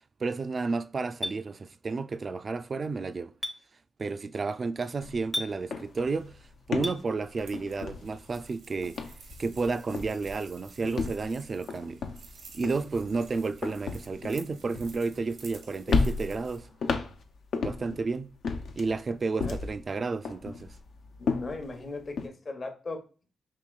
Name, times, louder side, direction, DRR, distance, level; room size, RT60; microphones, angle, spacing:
voice 1, 0.2-3.3 4.0-6.4 6.7-9.0 9.4-12.0 12.5-16.7 17.6-18.3 18.8-20.7, right 4 dB, 50° right, 0.3 m, -31 dB
Chink clink, 1.2-1.4 3.4-3.6 5.3-5.5 6.8-7.0, left 1 dB, 25° left, 0.6 m, -32 dB
sound 1, 5.0-5.2 5.5-8.5 8.8-9.7 9.9-10.3 10.8-15.5 15.9-18.0 18.4-19.9 20.3-22.3, left 4 dB, 75° left, 0.5 m, -33 dB
sound 2, 7.2-16.6, right 4 dB, 80° right, 0.9 m, -51 dB
voice 2, 21.2-23.0, left 3 dB, 50° left, 0.9 m, -38 dB
4.8 x 3.0 x 2.3 m
supercardioid pair, 45°, 0 cm